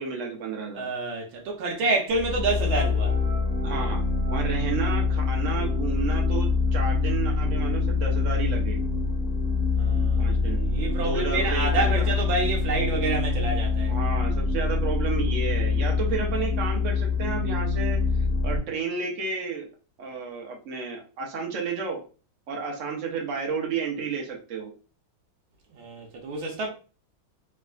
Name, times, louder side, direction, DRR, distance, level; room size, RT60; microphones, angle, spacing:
voice 1, 0.0-0.9 3.6-4.0 4.3-8.8 10.2-10.6 11.0-12.1 13.9-18.0 18.4-19.7 20.0-22.0 22.5-24.7, right 4 dB, 60° right, 0.8 m, -32 dB
voice 2, 0.7-3.2 9.7-14.0 25.7-26.7, right 3 dB, 80° right, 1.5 m, -28 dB
sound 1, 2.1-18.6, left 4 dB, 25° left, 1.2 m, -25 dB
3.4 x 3.3 x 2.3 m
omnidirectional pair, 2.2 m